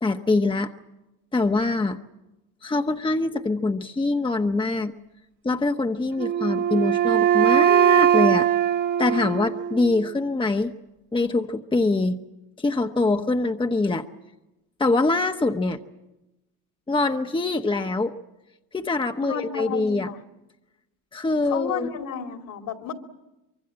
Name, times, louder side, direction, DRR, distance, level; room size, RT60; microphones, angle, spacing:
voice 1, 0.0-0.7 1.3-2.0 2.6-4.9 5.4-8.5 9.0-10.7 11.1-12.2 12.6-14.1 14.8-15.8 16.9-18.1 18.7-20.1 21.1-21.9, left 3 dB, 15° left, 6 dB, 1.1 m, -24 dB
Wind instrument woodwind instrument, 6.2-10.1, right 10 dB, 55° right, 1.8 m, -20 dB
voice 2, 19.2-20.2 21.5-22.9, left 7 dB, 60° left, 6 dB, 3.0 m, -32 dB
25.0 x 23.0 x 7.6 m, 0.97 s
supercardioid pair, 90°, 37 cm